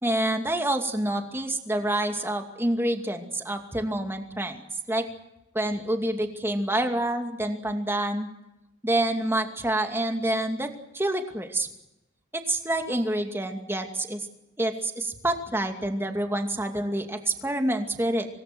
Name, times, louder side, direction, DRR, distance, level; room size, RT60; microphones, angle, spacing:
voice 1, 0.0-5.1 5.5-8.3 8.8-11.7 12.3-14.3 14.6-18.3, right 1 dB, 10° right, 5 dB, 2.5 m, -27 dB
26.0 x 19.0 x 7.9 m, 0.91 s
head